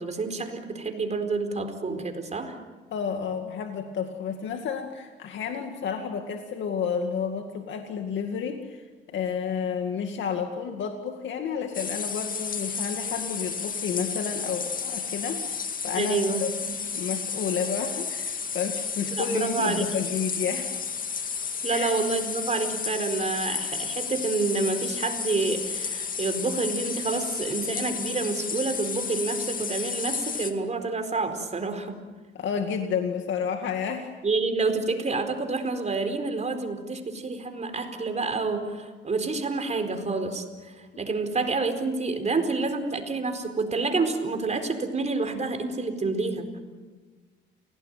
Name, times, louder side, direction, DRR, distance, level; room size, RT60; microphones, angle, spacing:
voice 1, 0.0-2.6 15.9-16.7 19.1-19.9 21.6-32.0 34.2-46.5, right 3 dB, 35° right, 6 dB, 4.4 m, -28 dB
voice 2, 2.9-15.6 15.8-16.5 16.9-20.8 21.7-21.9 32.3-34.1, left 6 dB, 70° left, 5 dB, 2.2 m, -31 dB
sound 1, 11.7-30.5, left 6 dB, 45° left, 2.1 m, -32 dB
29.5 x 18.0 x 9.3 m, 1.4 s
cardioid pair, 90°, 20 cm